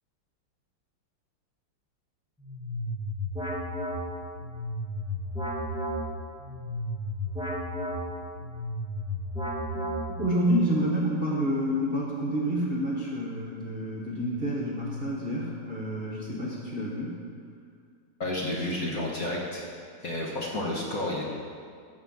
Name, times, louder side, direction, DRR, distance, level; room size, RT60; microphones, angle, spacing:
sound 1, 2.4-10.5, equal, 5° right, 0.8 m, -33 dB
voice 1, 9.7-17.2, equal, 35° right, -3 dB, 1.1 m, -29 dB
voice 2, 18.2-19.6 20.0-21.3, left 1 dB, 50° left, -2 dB, 1.3 m, -31 dB
9.3 x 5.7 x 7.3 m, 2.1 s
omnidirectional pair, 2.3 m